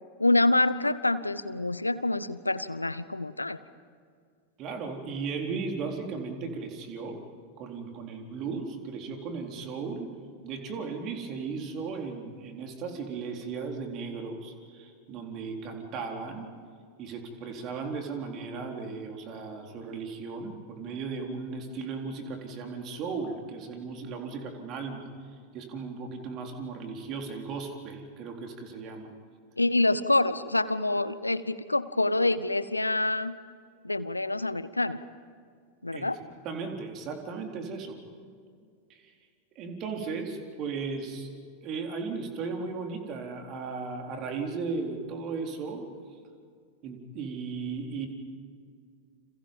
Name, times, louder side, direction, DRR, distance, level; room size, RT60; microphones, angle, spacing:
voice 1, 0.2-3.6 29.6-33.4 33.8-35.0 35.8-36.2, left 2 dB, 85° left, 16 dB, 0.8 m, -26 dB
voice 2, 4.6-7.2 7.6-10.1 10.4-16.5 17.0-25.1 25.5-29.1 35.9-36.1 36.4-38.0 38.9-39.0 39.6-41.3 41.6-45.9 46.8-48.1, right 4 dB, 35° right, 3 dB, 4.0 m, -36 dB
30.0 x 28.0 x 5.5 m, 2.2 s
figure-of-eight pair, 90°, 0 cm